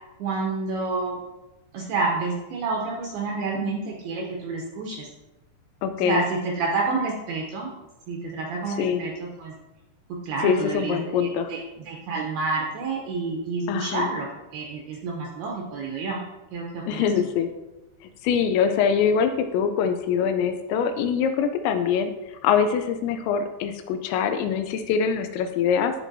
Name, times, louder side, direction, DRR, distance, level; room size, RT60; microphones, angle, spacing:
voice 1, 0.2-1.2 1.7-5.1 6.0-7.7 8.1-9.5 10.2-11.6 11.9-14.3 14.5-16.2 16.5-17.1, right 3 dB, 80° right, -1 dB, 2.3 m, -29 dB
voice 2, 5.8-6.2 8.8-9.0 10.4-11.5 13.7-14.1 16.8-17.5 18.2-22.1 22.4-25.9, left 7 dB, 85° left, 7 dB, 2.7 m, -23 dB
12.0 x 4.5 x 2.6 m, 1.0 s
omnidirectional pair, 5.4 m